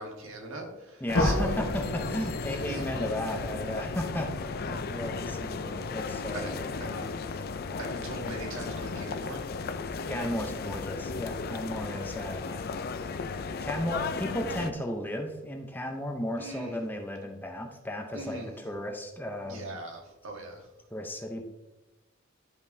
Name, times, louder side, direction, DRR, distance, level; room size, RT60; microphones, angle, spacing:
voice 1, 0.0-1.7 2.7-2.9 3.7-3.8 4.7-4.8 6.3-6.5 6.8-7.4 7.8-9.5 16.4-16.9 18.1-18.6 19.4-20.7, right 1 dB, 80° right, 1 dB, 1.5 m, -40 dB
voice 2, 1.0-6.7 10.1-12.7 13.6-19.8 20.9-21.5, left 1 dB, 10° left, 3 dB, 0.7 m, -35 dB
sound 1, 1.1-5.9, left 1 dB, 80° left, 1.1 m, -33 dB
sound 2, 1.1-14.7, left 4 dB, 50° left, 0.4 m, -35 dB
11.5 x 5.3 x 2.7 m, 1.0 s
head